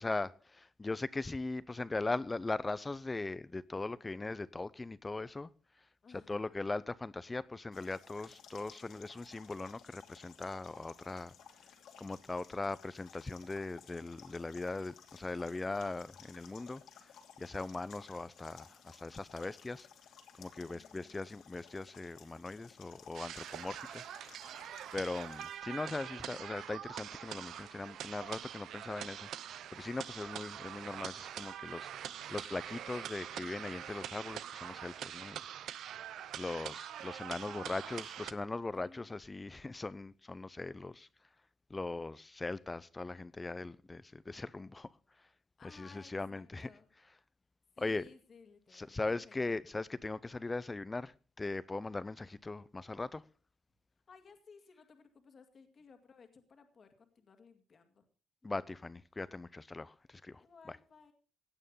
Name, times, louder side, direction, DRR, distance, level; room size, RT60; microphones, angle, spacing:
voice 1, 0.0-5.5 5.8-5.9 6.3-11.4 12.0-19.9 20.4-24.1 24.9-35.4 36.4-41.1 41.7-44.9 45.2-45.3 45.7-46.7 47.8-48.1 48.7-53.2 58.4-60.4, left 3 dB, 20° left, 0.6 m, -40 dB
voice 2, 6.0-6.7 20.6-21.2 37.4-37.9 38.7-39.1 45.6-46.9 47.7-49.5 54.1-58.1 60.4-61.1, left 5 dB, 45° left, 2.0 m, -59 dB
sound 1, 7.7-25.6, left 7 dB, 80° left, 2.7 m, -58 dB
sound 2, 23.1-38.3, right 10 dB, 75° right, 0.7 m, -44 dB
17.0 x 9.0 x 5.5 m
cardioid pair, 90°, 0 cm